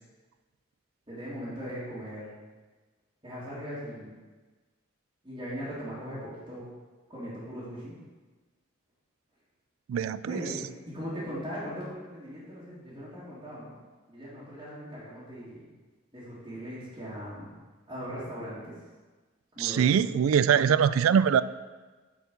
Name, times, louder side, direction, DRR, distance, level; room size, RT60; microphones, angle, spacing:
voice 1, 1.1-2.3 3.2-4.1 5.2-6.6 7.1-8.0 10.3-13.8 14.1-15.7 16.1-17.6 17.9-18.7 19.5-19.9, equal, 25° right, -12 dB, 2.2 m, -39 dB
voice 2, 9.9-10.4 19.6-21.4, right 8 dB, 80° right, 15 dB, 0.3 m, -23 dB
8.3 x 4.7 x 5.4 m, 1.3 s
head